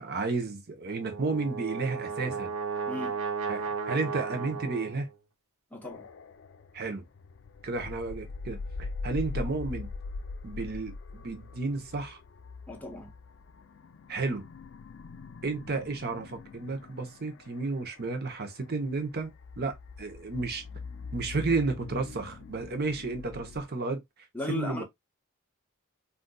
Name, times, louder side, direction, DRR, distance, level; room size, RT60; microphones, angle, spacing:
voice 1, 0.0-2.5 3.5-5.1 6.7-7.0 7.6-9.9 10.4-12.2 14.1-14.4 15.4-20.6 21.1-24.0 24.5-24.8, right 3 dB, 50° right, 0.8 m, -32 dB
Brass instrument, 0.9-5.1, right 5 dB, 85° right, 0.7 m, -34 dB
voice 2, 2.8-3.2 5.7-6.1 12.7-13.1 24.3-24.8, left 2 dB, 10° left, 0.8 m, -36 dB
sound 1, 5.8-23.6, left 4 dB, 60° left, 0.4 m, -42 dB
3.8 x 2.6 x 2.2 m
head